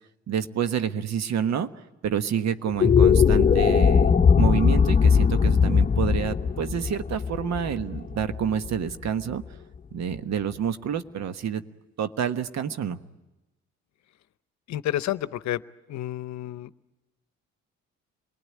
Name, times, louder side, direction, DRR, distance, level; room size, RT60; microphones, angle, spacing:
voice 1, 0.3-1.7 2.0-9.4 9.9-11.6 12.0-13.0, right 8 dB, 60° right, 10 dB, 1.3 m, -28 dB
sound 1, 2.7-9.1, left 6 dB, 25° left, 0.9 m, -20 dB
voice 2, 14.7-15.6 15.9-16.7, left 13 dB, 65° left, 16 dB, 0.8 m, -30 dB
27.5 x 19.5 x 9.5 m, 1.0 s
supercardioid pair, 65°, 30 cm